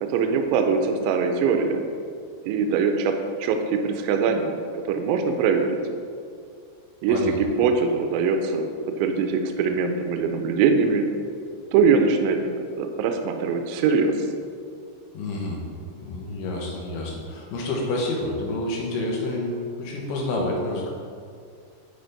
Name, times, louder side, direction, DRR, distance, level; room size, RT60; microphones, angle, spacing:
voice 1, 0.0-1.8 2.4-3.1 3.4-4.6 4.8-5.8 7.0-8.7 9.0-11.1 11.7-12.4 12.7-14.3, right 5 dB, 85° right, 5 dB, 2.8 m, -22 dB
voice 2, 15.1-15.6 16.0-20.9, left 2 dB, 70° left, -2 dB, 2.6 m, -28 dB
9.6 x 5.1 x 4.0 m, 2.2 s
omnidirectional pair, 5.5 m